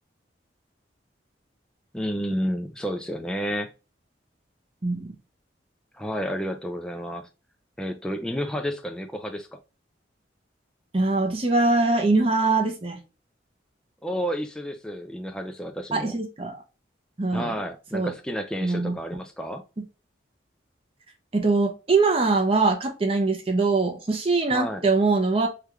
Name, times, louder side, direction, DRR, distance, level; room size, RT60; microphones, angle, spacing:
voice 1, 1.9-3.7 5.9-7.3 7.8-9.6 14.0-16.1 17.3-19.6 24.5-24.8, equal, 5° left, 0.3 m, -31 dB
voice 2, 10.9-13.0 15.9-16.6 17.2-17.5 17.9-18.1 18.6-19.0 21.3-25.5, right 3 dB, 30° right, 0.6 m, -22 dB
3.4 x 2.3 x 3.0 m
head